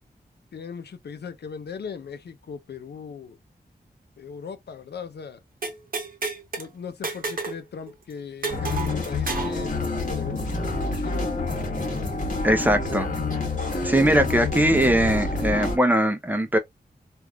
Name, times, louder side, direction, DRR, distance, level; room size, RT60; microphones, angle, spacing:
voice 1, 0.5-3.4 4.2-5.4 6.6-11.3 12.6-13.0, left 6 dB, 75° left, 0.5 m, -39 dB
sound 1, 5.6-6.7 7.0-7.6 7.9-8.0 8.4-9.6, right 4 dB, 55° right, 0.8 m, -31 dB
sound 2, 8.5-15.8, left 3 dB, 50° left, 1.2 m, -28 dB
voice 2, 12.4-13.1 13.8-16.6, right 1 dB, 10° right, 0.5 m, -21 dB
3.4 x 2.4 x 2.2 m
wide cardioid pair, 100°, 17 cm